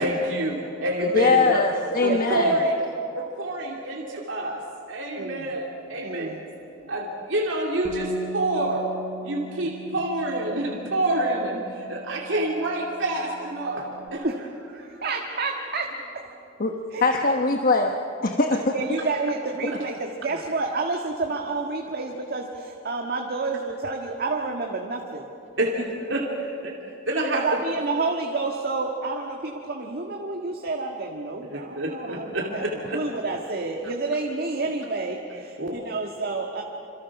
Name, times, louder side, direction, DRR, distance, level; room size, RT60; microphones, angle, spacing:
voice 1, 0.0-1.6 2.0-2.8 3.1-4.6 4.9-6.3 6.9-8.8 9.2-14.3 18.5-18.6 25.6-26.8 27.1-27.6 31.4-33.0 34.6-34.7 35.3-35.8, right 1 dB, 75° right, -2 dB, 2.7 m, -27 dB
voice 2, 1.1-2.5 16.6-16.7 17.0-17.9 18.2-18.7, left 3 dB, 50° left, 3 dB, 1.1 m, -21 dB
voice 3, 2.0-2.6 5.2-5.4 6.0-6.4 14.2-14.3 15.0-15.8 16.9-17.1 18.7-22.4 22.9-25.2 27.3-32.6 32.9-35.2 35.7-36.6, right 3 dB, 55° right, 1 dB, 1.7 m, -29 dB
Bass guitar, 7.8-14.1, right 1 dB, 10° left, 1.6 m, -39 dB
27.0 x 27.0 x 6.0 m, 2.7 s
head